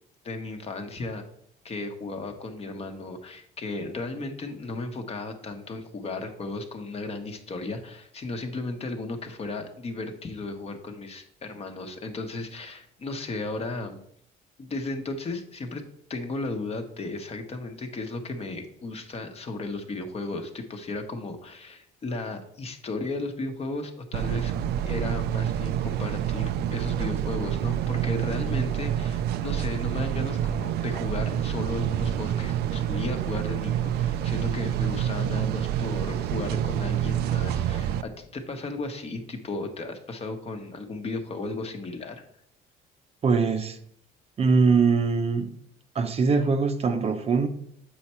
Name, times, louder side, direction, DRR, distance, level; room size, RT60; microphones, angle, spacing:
voice 1, 0.2-1.2 1.6-14.0 14.6-15.8 16.1-24.5 24.8-42.2, left 2 dB, 35° left, 1.0 m, -35 dB
sound 1, 24.1-38.0, right 10 dB, 75° right, 0.4 m, -27 dB
voice 2, 43.2-43.8 44.4-45.5 45.9-47.5, right 4 dB, 40° right, 0.7 m, -22 dB
7.2 x 4.5 x 4.3 m
cardioid pair, 110°, 17 cm